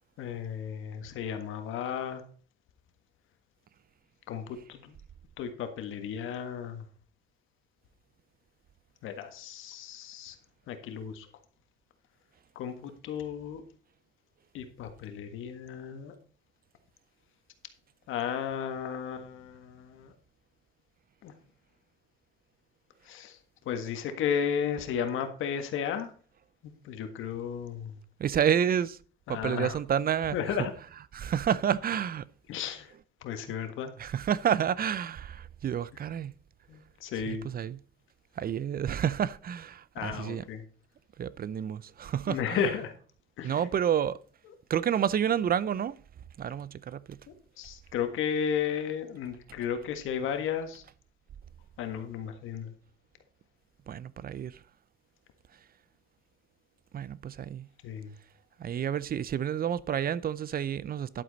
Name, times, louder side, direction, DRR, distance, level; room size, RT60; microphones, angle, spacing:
voice 1, 0.2-2.2 4.3-5.0 5.4-6.8 9.0-10.4 10.7-11.3 12.6-13.6 14.5-16.2 18.1-20.1 21.2-21.3 23.0-23.4 23.7-26.1 26.6-28.0 29.3-29.8 30.3-30.7 32.5-32.9 33.2-33.9 36.7-37.5 40.0-40.6 42.3-42.9 43.4-43.7 47.6-50.8 51.8-52.7 57.8-58.1, left 7 dB, 85° left, 1.6 m, -34 dB
voice 2, 28.2-29.0 29.3-30.6 31.1-32.3 34.0-36.3 37.3-37.8 38.4-40.4 41.2-42.6 43.4-44.2 44.7-46.0 46.4-47.2 53.9-54.6 56.9-57.7 58.6-61.2, right 9 dB, 50° right, 0.6 m, -29 dB
11.0 x 8.0 x 4.1 m
cardioid pair, 90°, 20 cm